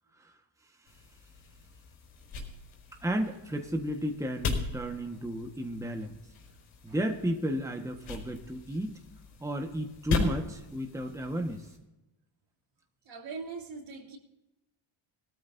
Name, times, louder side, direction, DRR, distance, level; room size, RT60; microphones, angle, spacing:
sound 1, 0.9-11.8, left 4 dB, 75° left, 4.7 m, -38 dB
voice 1, 3.0-6.1 6.8-9.0 9.4-11.7, right 1 dB, 5° right, 1.4 m, -33 dB
voice 2, 13.0-14.2, right 4 dB, 65° right, 3.0 m, -41 dB
20.0 x 13.0 x 2.7 m
cardioid pair, 95°, 50 cm